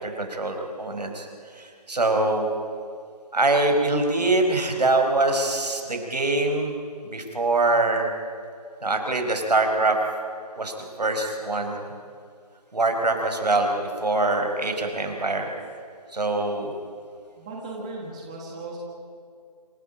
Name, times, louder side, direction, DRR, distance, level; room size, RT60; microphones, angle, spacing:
voice 1, 0.0-1.3 1.6-2.5 3.3-6.7 7.0-8.1 8.8-10.0 10.5-11.8 12.7-13.7 14.0-15.4 16.1-16.7, right 2 dB, 80° right, 3 dB, 5.1 m, -23 dB
voice 2, 17.4-18.8, right 2 dB, 10° right, -2 dB, 1.5 m, -36 dB
26.5 x 14.5 x 9.0 m, 2.3 s
figure-of-eight pair, 175°, 21 cm